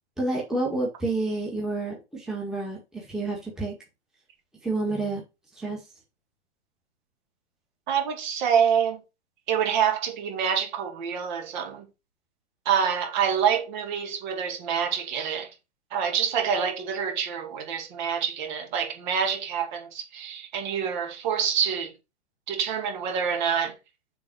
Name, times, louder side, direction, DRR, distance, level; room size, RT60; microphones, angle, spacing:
voice 1, 0.2-3.7 4.6-5.2 5.6-5.8, right 2 dB, ahead, 1.8 m, -29 dB
voice 2, 7.9-9.0 9.5-11.9 12.7-15.5 15.9-21.9 22.5-23.7, right 7 dB, 40° right, 2.3 m, -26 dB
7.1 x 4.3 x 6.1 m
hypercardioid pair, 150°, 34 cm